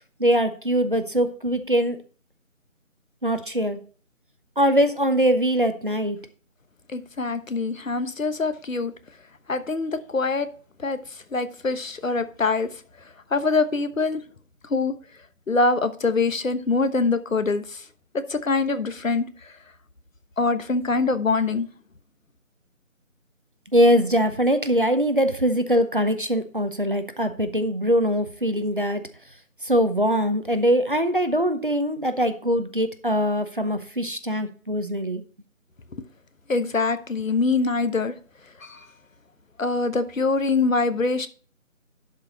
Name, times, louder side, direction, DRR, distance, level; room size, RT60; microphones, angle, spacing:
voice 1, 0.2-2.0 3.2-3.8 4.6-6.2 23.7-29.0 29.6-35.2, equal, 40° right, 9 dB, 0.7 m, -22 dB
voice 2, 6.9-8.9 9.5-10.5 10.8-12.8 13.3-14.2 14.6-14.9 15.5-17.9 18.1-19.6 20.4-21.7 36.5-38.1 38.6-38.9 39.6-41.3, left 3 dB, 70° left, 11 dB, 1.1 m, -24 dB
11.5 x 5.1 x 4.1 m, 0.40 s
figure-of-eight pair, 175°, 41 cm